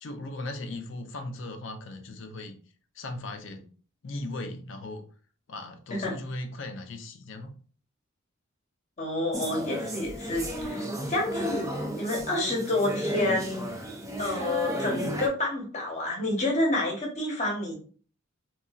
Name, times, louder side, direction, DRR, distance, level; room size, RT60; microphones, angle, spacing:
voice 1, 0.0-2.6 2.9-3.7 4.0-5.0 5.5-7.6, left 2 dB, 60° left, 6 dB, 0.5 m, -38 dB
voice 2, 9.0-13.7 14.2-17.7, left 2 dB, 30° left, 0 dB, 0.9 m, -29 dB
sound 1, 9.3-15.3, equal, 15° right, 0.4 m, -33 dB
3.7 x 2.3 x 2.3 m, 0.42 s
head